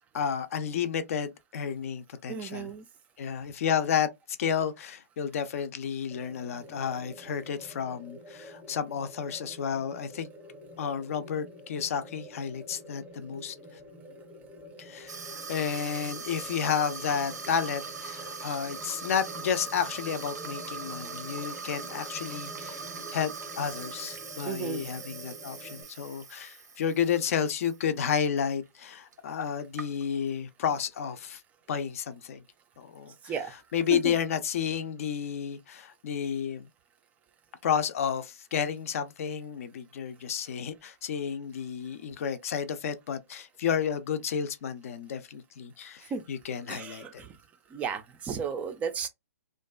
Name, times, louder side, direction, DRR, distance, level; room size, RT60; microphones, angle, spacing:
voice 1, 0.1-2.7 3.2-4.1 4.4-10.3 10.8-13.6 14.8-15.2 15.5-22.8 23.1-31.4 31.7-32.4 32.8-33.3 33.7-36.7 37.6-47.2, left 7 dB, 55° left, 0.4 m, -31 dB
voice 2, 2.3-2.8 24.5-24.8 33.2-33.6 33.9-34.2 46.1-46.2 46.7-47.3 47.7-49.1, right 6 dB, 15° right, 0.3 m, -34 dB
sound 1, 6.1-25.8, equal, 5° left, 0.7 m, -47 dB
Water tap faucet / Sink (filling or washing), 15.1-27.8 28.1-28.4 29.1-29.2 29.4-30.3, right 5 dB, 85° right, 0.6 m, -41 dB
2.5 x 2.3 x 2.3 m
hypercardioid pair, 135°, 9 cm